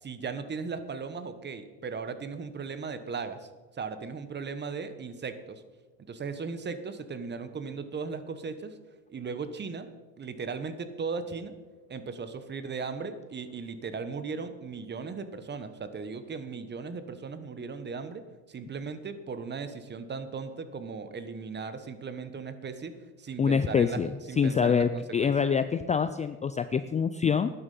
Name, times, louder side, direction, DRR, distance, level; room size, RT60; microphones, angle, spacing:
voice 1, 0.0-3.5 3.8-5.6 6.1-8.8 9.1-9.9 10.2-11.5 11.9-18.2 18.5-25.3, right 5 dB, 30° right, 11 dB, 1.1 m, -37 dB
voice 2, 23.4-24.1 24.4-27.5, left 6 dB, 20° left, 11 dB, 0.4 m, -25 dB
12.5 x 9.8 x 5.5 m, 1.3 s
supercardioid pair, 105°, 37 cm